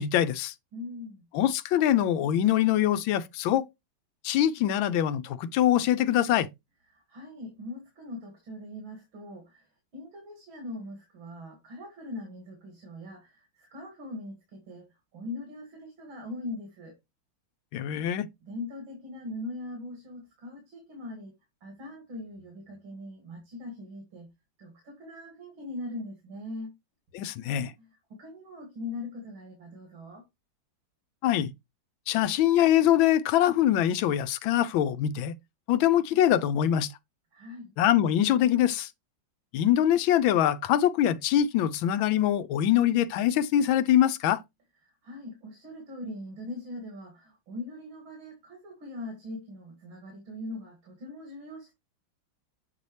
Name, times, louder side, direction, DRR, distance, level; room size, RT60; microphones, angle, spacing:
voice 1, 0.0-0.5 1.3-3.7 4.2-6.5 17.7-18.3 27.1-27.7 31.2-31.5 32.1-35.3 35.7-36.9 37.8-38.9 39.5-44.4, left 11 dB, 80° left, 1.4 m, -23 dB
voice 2, 0.7-1.3 6.9-17.0 18.4-21.3 21.6-24.3 24.6-26.8 27.8-30.2 37.3-37.7 44.8-51.7, left 2 dB, 85° right, 2.9 m, -41 dB
8.1 x 4.1 x 3.2 m
omnidirectional pair, 2.2 m